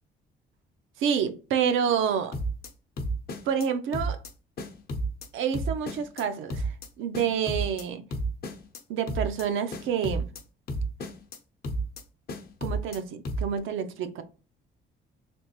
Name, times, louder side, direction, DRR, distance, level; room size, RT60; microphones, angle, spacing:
voice 1, 1.0-2.3 3.5-4.2 5.3-8.0 8.9-10.3 12.6-14.2, right 7 dB, 80° right, 0.5 m, -28 dB
sound 1, 2.3-2.7 3.0-3.7 3.9-4.3 4.6-5.3 5.5-6.2 6.5-6.9 7.1-7.8 8.1-8.8 9.1-9.4 9.7-10.4 10.7-11.4 11.6-12.0 12.3-13.0 13.2-13.6, right 1 dB, 50° left, 0.7 m, -31 dB
3.4 x 2.4 x 2.9 m
cardioid pair, 90°, 20 cm